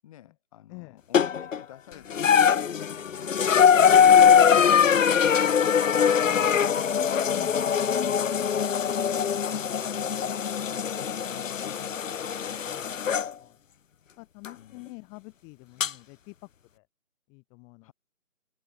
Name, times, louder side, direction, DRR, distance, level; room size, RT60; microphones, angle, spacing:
voice 1, 0.0-4.0 4.9-6.9 8.2-12.6 14.5-14.8 17.8-17.9, left 13 dB, 25° left, 7.8 m, -51 dB
voice 2, 0.7-1.0 3.8-4.3 6.2-6.5 7.3-7.6 12.6-13.6 14.2-16.9 17.3-17.9, left 33 dB, 10° left, 1.6 m, -47 dB
sound 1, 1.1-1.6 2.1-13.3 14.4-14.5 15.8-15.9, left 7 dB, 65° left, 0.7 m, -22 dB
figure-of-eight pair, 160°, 41 cm